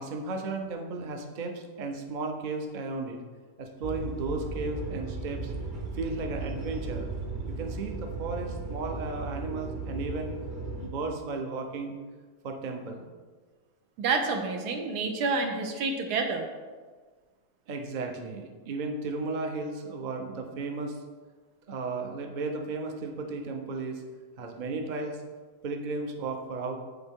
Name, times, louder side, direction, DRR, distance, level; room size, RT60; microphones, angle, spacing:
voice 1, 0.0-3.2 3.6-5.5 5.9-7.1 7.5-10.3 10.8-12.0 12.4-13.1 17.7-21.0 21.7-24.0 24.4-25.2 25.6-26.8, right 3 dB, 55° right, 3 dB, 0.5 m, -34 dB
sound 1, 3.8-10.9, right 2 dB, 35° right, 0.9 m, -36 dB
voice 2, 14.0-16.5, right 4 dB, 90° right, 3 dB, 1.3 m, -28 dB
8.0 x 3.9 x 3.5 m, 1.4 s
omnidirectional pair, 1.6 m